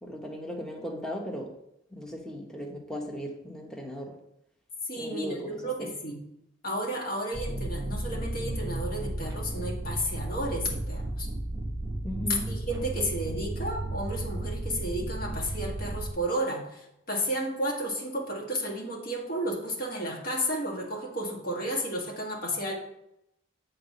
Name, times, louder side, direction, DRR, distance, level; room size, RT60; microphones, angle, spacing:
voice 1, 0.0-1.5 1.9-4.1 5.0-5.9 12.0-12.4, equal, 5° left, 0 dB, 1.0 m, -37 dB
voice 2, 4.9-6.2 6.6-11.3 12.5-22.7, equal, 50° left, -1 dB, 1.7 m, -32 dB
sound 1, 7.3-16.1, right 1 dB, 20° right, 1.1 m, -34 dB
7.7 x 3.9 x 5.7 m, 0.81 s
head